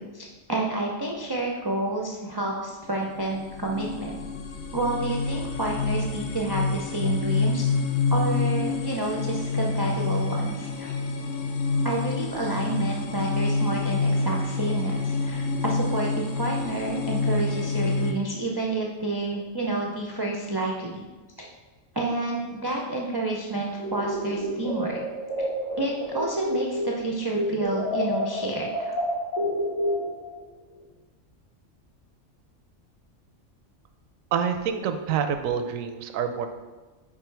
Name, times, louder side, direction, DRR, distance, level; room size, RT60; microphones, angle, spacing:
voice 1, 0.0-4.2 4.7-7.7 8.1-10.9 11.8-21.1 21.4-21.5 21.9-25.0 25.8-28.9, right 2 dB, 35° right, -2 dB, 0.4 m, -29 dB
sound 1, 2.9-18.1, left 3 dB, 70° left, 0.9 m, -27 dB
sound 2, 23.7-27.0 27.3-30.3, equal, 50° left, 2.0 m, -29 dB
voice 2, 34.3-36.5, right 7 dB, 90° right, 8 dB, 1.0 m, -27 dB
4.9 x 4.6 x 4.5 m, 1.2 s
omnidirectional pair, 1.3 m